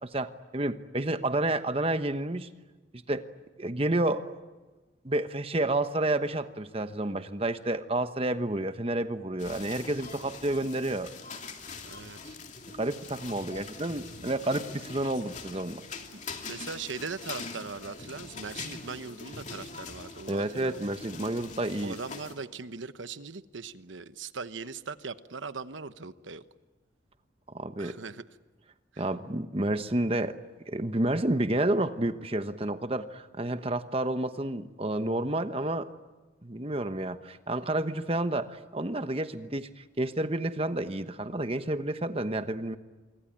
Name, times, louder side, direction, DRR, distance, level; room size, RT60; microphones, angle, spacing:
voice 1, 0.0-2.5 3.1-3.2 3.6-4.3 5.0-11.1 12.8-15.8 20.3-22.0 27.5-28.0 29.0-30.4 30.7-35.9 36.4-42.8, right 1 dB, 30° right, 10 dB, 1.1 m, -30 dB
sound 1, 9.4-22.3, left 4 dB, 40° left, 2.6 m, -43 dB
voice 2, 11.8-12.4 16.1-16.2 16.5-20.8 21.8-26.4 27.8-28.2 28.9-29.1, right 4 dB, 75° right, 12 dB, 1.0 m, -40 dB
26.5 x 24.0 x 8.8 m, 1.2 s
head